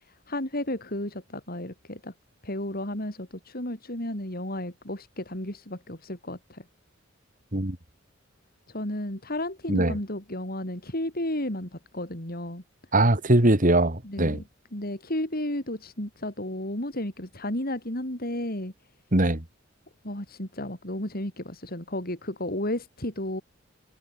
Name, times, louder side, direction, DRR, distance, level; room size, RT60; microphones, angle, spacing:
voice 1, 0.3-2.1 2.4-6.6 8.7-12.6 14.0-14.4 14.7-18.7 20.0-23.4, left 1 dB, 50° left, 6.6 m, -33 dB
voice 2, 12.9-14.4 19.1-19.4, right 1 dB, 45° right, 2.7 m, -21 dB
head